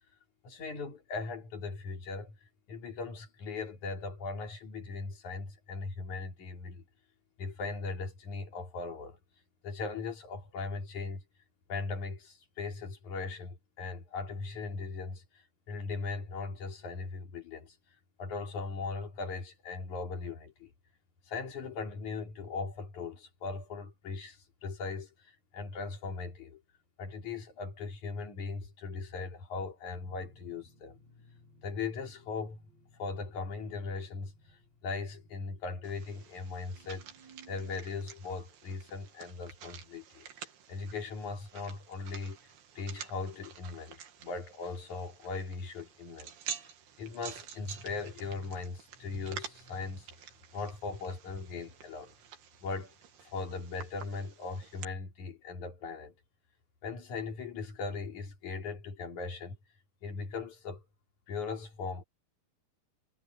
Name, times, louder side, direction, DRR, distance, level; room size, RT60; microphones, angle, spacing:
voice 1, 0.4-6.8 7.4-9.2 9.6-11.2 11.7-20.7 21.2-26.6 27.0-31.0 31.6-32.6 33.0-42.5 42.8-46.7 47.0-52.1 52.6-52.9 53.2-56.1 56.8-59.6 60.0-60.8 61.3-62.0, left 4 dB, 50° left, 4.8 m, -39 dB
sound 1, 30.0-37.8, right 1 dB, 30° right, 4.2 m, -61 dB
sound 2, 35.8-54.8, right 8 dB, 80° right, 4.2 m, -49 dB
omnidirectional pair, 4.4 m